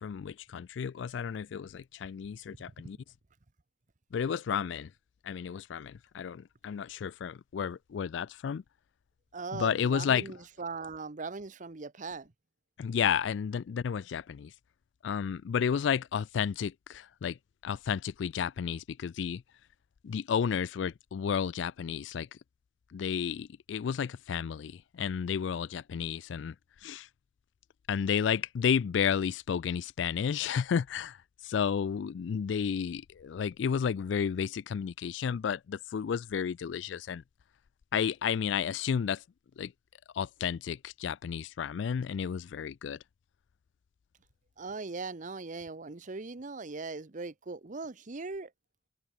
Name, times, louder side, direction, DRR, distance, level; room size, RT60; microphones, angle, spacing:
voice 1, 0.0-3.0 4.1-4.9 5.2-8.6 9.5-10.3 12.8-14.5 15.0-17.4 17.6-19.4 20.0-22.3 22.9-26.5 26.8-27.1 27.9-31.2 31.4-37.2 37.9-39.2 39.6-39.7 40.1-43.0, left 7 dB, 75° left, 0.4 m, -32 dB
voice 2, 9.3-12.3 44.6-48.5, right 3 dB, 45° right, 0.9 m, -39 dB
open air
head